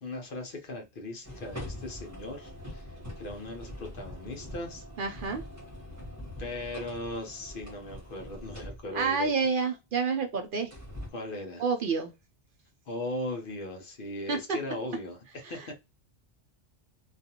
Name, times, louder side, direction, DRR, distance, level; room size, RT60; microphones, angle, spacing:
voice 1, 0.0-4.8 6.4-9.3 11.1-11.7 12.9-15.7, left 2 dB, 55° left, 0.8 m, -38 dB
sound 1, 1.2-9.1 10.7-11.1, left 1 dB, 15° right, 1.0 m, -43 dB
voice 2, 5.0-5.4 8.9-10.7 11.6-12.1 14.3-14.4 15.5-15.7, right 5 dB, 60° right, 0.6 m, -29 dB
2.5 x 2.3 x 2.7 m
omnidirectional pair, 1.1 m